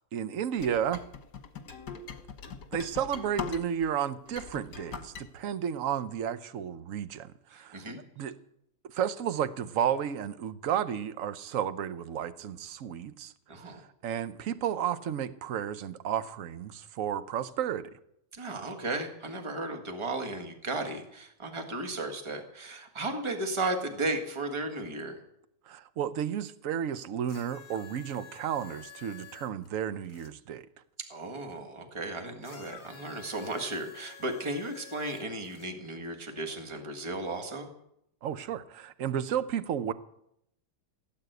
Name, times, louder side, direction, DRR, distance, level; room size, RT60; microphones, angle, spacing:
voice 1, 0.1-1.0 2.7-7.8 8.2-8.3 8.8-13.3 14.0-17.9 25.7-30.7 38.2-39.9, right 9 dB, 60° right, 1.0 m, -32 dB
sound 1, 0.6-3.9 4.3-5.2, left 5 dB, 65° left, 1.9 m, -40 dB
voice 2, 7.5-8.0 13.5-13.8 18.3-25.2 31.1-37.7, right 2 dB, 15° right, 1.7 m, -35 dB
sound 2, 27.2-30.3 32.4-35.7 36.6-36.7, left 7 dB, 40° left, 1.6 m, -50 dB
17.5 x 9.1 x 8.1 m
omnidirectional pair, 1.9 m